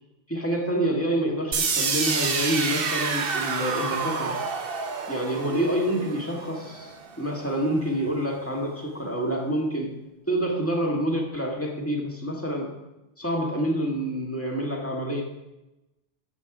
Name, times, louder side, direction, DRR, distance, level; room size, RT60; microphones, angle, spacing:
voice 1, 0.3-4.4 5.1-9.9 10.3-12.7 13.2-15.2, right 1 dB, 10° left, 0 dB, 1.8 m, -27 dB
sound 1, 1.5-7.4, right 5 dB, 55° right, 1.1 m, -28 dB
11.5 x 7.3 x 5.0 m, 0.99 s
omnidirectional pair, 1.2 m